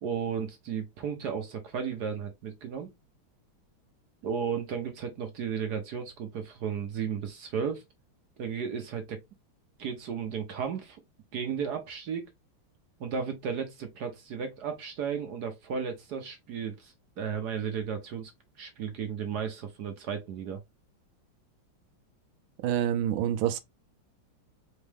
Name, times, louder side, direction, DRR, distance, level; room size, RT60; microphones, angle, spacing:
voice 1, 0.0-2.9 4.2-7.8 8.4-9.2 9.8-11.0 11.3-12.3 13.0-18.3 18.6-20.6, right 7 dB, 60° right, 1.2 m, -34 dB
voice 2, 22.6-23.6, right 10 dB, 80° right, 1.4 m, -27 dB
4.4 x 3.1 x 3.3 m
omnidirectional pair, 2.2 m